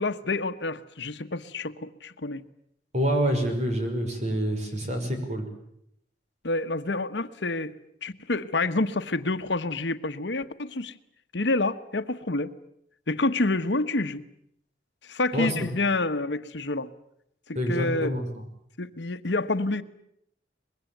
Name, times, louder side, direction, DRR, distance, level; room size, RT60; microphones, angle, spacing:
voice 1, 0.0-2.4 6.4-7.7 8.0-11.0 11.3-12.5 13.1-14.2 15.0-16.9 17.5-18.2 18.8-19.8, left 2 dB, 80° left, 10 dB, 1.3 m, -28 dB
voice 2, 2.9-5.5 15.3-15.5 17.5-18.3, equal, 40° right, 5 dB, 6.0 m, -27 dB
24.5 x 21.5 x 9.2 m, 0.73 s
head